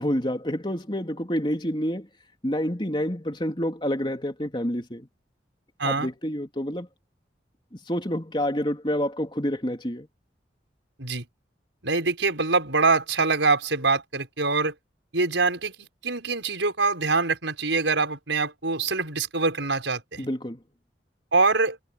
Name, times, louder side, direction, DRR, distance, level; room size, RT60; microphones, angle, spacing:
voice 1, 0.0-2.1 2.4-5.1 5.8-6.9 7.9-10.1 20.2-20.6, equal, 25° left, 3.4 m, -28 dB
voice 2, 11.8-14.7 15.1-20.3 21.3-21.8, right 3 dB, 85° right, 5.7 m, -24 dB
head